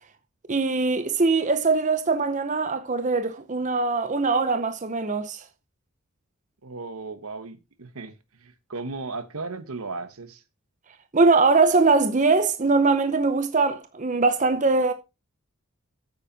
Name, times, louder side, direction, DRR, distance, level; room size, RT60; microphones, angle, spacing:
voice 1, 0.5-5.4 11.1-14.9, right 3 dB, 35° right, 0.7 m, -22 dB
voice 2, 6.6-10.4, right 3 dB, 80° right, 1.3 m, -36 dB
9.0 x 8.3 x 4.1 m
head